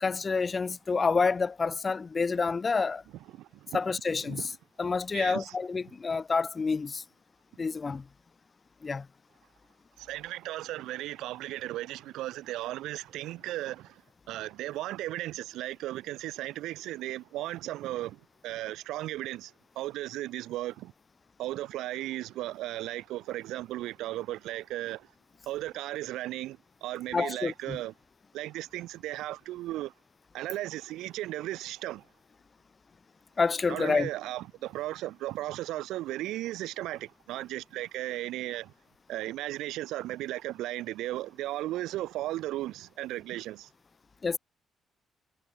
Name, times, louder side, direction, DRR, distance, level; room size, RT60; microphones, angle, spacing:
voice 1, 0.0-3.0 3.7-4.5 4.8-7.0 7.6-8.0 8.8-9.1 27.1-27.8 33.4-34.1 44.2-44.4, left 4 dB, 35° left, 0.5 m, -28 dB
voice 2, 3.4-3.8 4.3-4.4 5.1-5.5 10.0-13.9 14.3-18.2 18.4-19.5 19.8-20.9 21.4-25.0 25.5-27.9 28.3-29.9 30.3-32.0 33.7-38.7 39.1-43.7, right 15 dB, 90° right, 0.7 m, -36 dB
cardioid pair, 90°, 0 cm